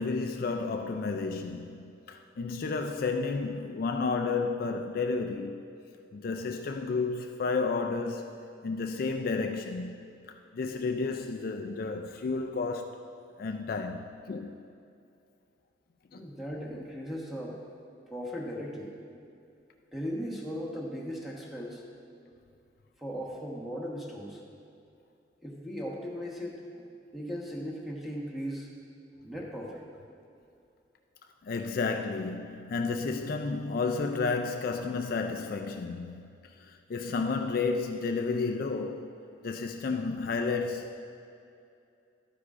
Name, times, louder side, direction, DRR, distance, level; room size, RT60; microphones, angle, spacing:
voice 1, 0.0-5.6 6.1-8.3 8.6-9.9 10.5-13.1 13.4-14.5 16.1-16.3 31.4-36.1 36.6-39.2 39.4-41.0, left 4 dB, 50° left, 0.4 m, -31 dB
voice 2, 16.1-17.6 18.1-18.9 19.9-21.8 23.0-24.4 25.4-28.7 29.2-29.9, equal, ahead, 1.2 m, -37 dB
12.0 x 9.5 x 2.5 m
head